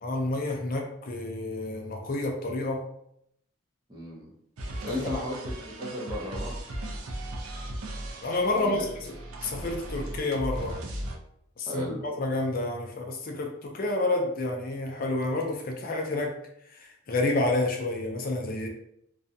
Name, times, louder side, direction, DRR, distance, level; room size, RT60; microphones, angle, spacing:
voice 1, 0.0-2.9 4.9-5.2 8.2-8.9 9.4-10.8 11.6-16.4 16.7-18.7, left 2 dB, 45° left, 2 dB, 0.4 m, -29 dB
voice 2, 3.9-4.3 4.8-6.7 8.5-8.9 11.7-12.0, left 1 dB, 20° right, -4 dB, 0.6 m, -35 dB
sound 1, 4.6-11.2, right 1 dB, 85° right, 0.5 m, -37 dB
2.4 x 2.2 x 2.6 m, 0.75 s
head